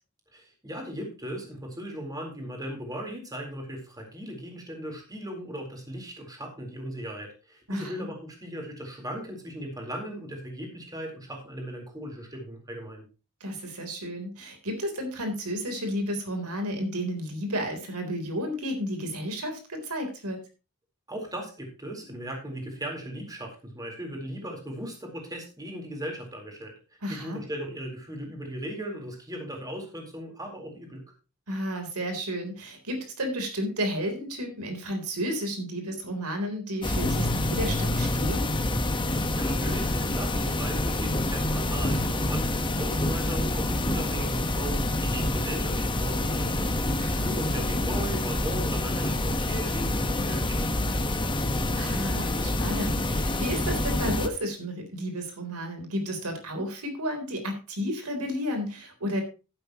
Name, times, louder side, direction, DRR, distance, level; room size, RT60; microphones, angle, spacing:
voice 1, 0.3-13.1 21.1-26.7 27.1-31.0 39.1-46.8 47.2-50.8, right 1 dB, 15° right, 1 dB, 4.1 m, -37 dB
voice 2, 7.7-8.1 13.4-20.4 27.0-27.4 31.5-38.5 47.0-47.3 51.8-59.2, equal, 85° right, 5 dB, 3.8 m, -32 dB
sound 1, 36.8-54.3, left 1 dB, 20° left, 1.3 m, -27 dB
15.0 x 9.8 x 3.1 m, 0.31 s
head